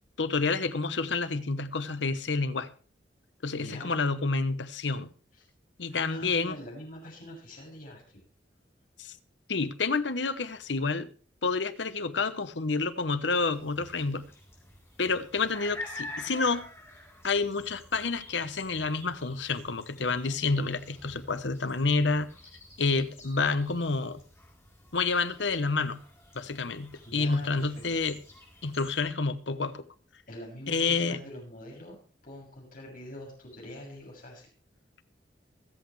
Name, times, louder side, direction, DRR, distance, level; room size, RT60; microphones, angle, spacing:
voice 1, 0.2-2.7 3.4-5.1 5.8-6.5 9.0-9.1 9.5-11.1 11.4-14.3 15.0-16.6 17.2-22.3 22.8-24.2 24.9-26.0 26.3-28.2 28.6-29.8 30.7-31.2, left 4 dB, 85° left, 1.0 m, -29 dB
voice 2, 3.5-3.9 5.3-5.4 5.9-8.0 27.0-27.8 30.3-32.0 32.2-34.5, left 1 dB, 55° left, 7.0 m, -44 dB
sound 1, 13.4-29.0, left 2 dB, 15° left, 4.5 m, -48 dB
24.5 x 8.3 x 3.2 m
head